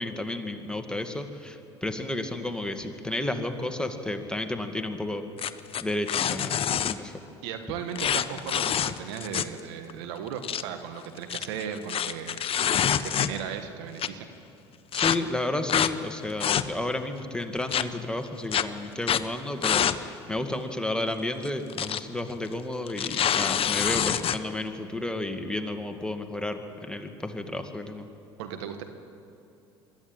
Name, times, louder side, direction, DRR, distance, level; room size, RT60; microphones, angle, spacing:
voice 1, 0.0-5.2 5.8-7.1 14.9-28.1, left 2 dB, 5° left, 5 dB, 2.0 m, -32 dB
sound 1, 5.4-6.9 8.0-9.6 9.9-10.0 10.3-10.6 11.2-13.5 14.0-14.1 14.9-15.2 15.7-15.9 16.3-16.9 17.7-17.8 18.5-18.6 19.0-19.3 19.6-20.0 20.3-20.4 21.5-22.0 22.3-22.5 22.9-24.4, left 9 dB, 40° left, 0.9 m, -26 dB
voice 2, 7.4-12.4 12.9-14.3 28.4-28.8, right 8 dB, 75° right, 7 dB, 1.6 m, -36 dB
23.0 x 13.5 x 8.9 m, 2.7 s
hypercardioid pair, 65°, 14 cm